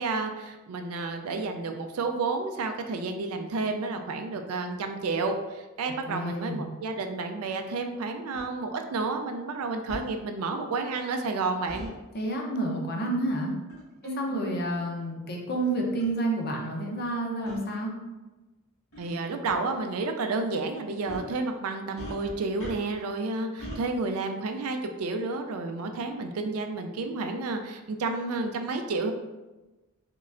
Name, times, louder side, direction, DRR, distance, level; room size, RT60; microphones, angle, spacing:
voice 1, 0.0-11.9 14.0-14.4 19.0-29.1, right 3 dB, 75° right, 5 dB, 0.4 m, -31 dB
voice 2, 6.1-6.6 12.1-13.5 14.0-17.9, right 1 dB, 45° left, 0 dB, 0.6 m, -29 dB
sound 1, 8.3-8.5 9.9-10.1 11.7-11.9 13.7-13.9 14.7-14.8 15.6-15.7 16.0-16.1 17.5-17.6 18.9-19.1 19.5-19.6 21.1-21.3 22.0-23.1 23.6-23.8, equal, 65° left, 1.3 m, -40 dB
3.6 x 3.1 x 2.5 m, 1.1 s
head